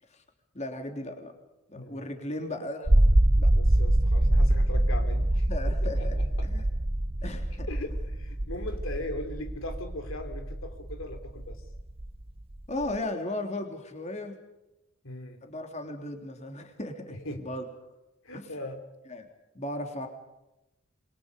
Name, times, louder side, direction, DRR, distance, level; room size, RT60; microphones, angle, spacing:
voice 1, 0.5-1.3 1.7-2.9 3.4-3.5 5.5-6.2 6.4-6.6 7.2-7.7 12.7-14.4 15.4-17.6 18.3-18.5 19.1-19.3 19.5-20.1, left 1 dB, 35° left, 4 dB, 3.4 m, -36 dB
voice 2, 1.7-2.1 3.5-6.5 7.7-11.7 15.0-15.4 17.1-17.5 18.2-18.8, left 1 dB, 75° left, 7 dB, 3.1 m, -39 dB
sound 1, 2.9-13.0, right 1 dB, 25° right, 0.8 m, -25 dB
27.5 x 23.0 x 5.3 m, 0.93 s
head